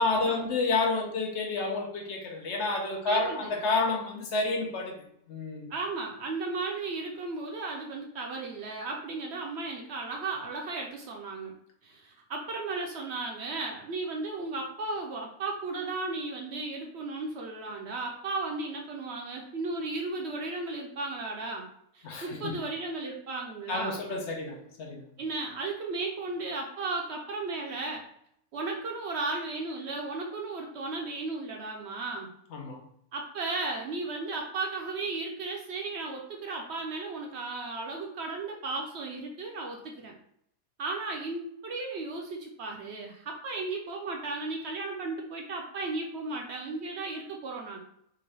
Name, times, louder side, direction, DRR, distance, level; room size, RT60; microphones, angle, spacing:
voice 1, 0.0-5.7 22.0-22.6 23.7-25.0 32.5-32.8, left 3 dB, 65° left, 1 dB, 0.9 m, -30 dB
voice 2, 3.1-3.6 5.7-11.5 11.8-21.7 21.9-24.0 25.2-28.1 28.5-32.3 33.1-40.1 40.8-47.8, right 3 dB, 60° right, 1 dB, 0.8 m, -35 dB
3.7 x 2.6 x 3.2 m, 0.72 s
omnidirectional pair, 1.4 m